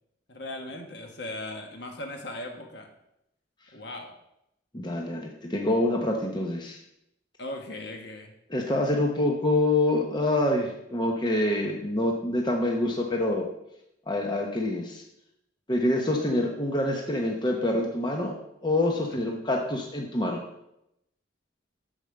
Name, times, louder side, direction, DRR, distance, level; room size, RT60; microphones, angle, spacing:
voice 1, 0.3-2.9 3.7-4.1 7.4-8.3 19.1-19.2, left 1 dB, 60° left, 3 dB, 1.3 m, -38 dB
voice 2, 4.7-6.8 8.5-13.5 14.1-15.0 15.7-18.3 18.6-20.4, left 1 dB, 25° left, 1 dB, 0.9 m, -26 dB
6.8 x 5.4 x 6.4 m, 0.82 s
head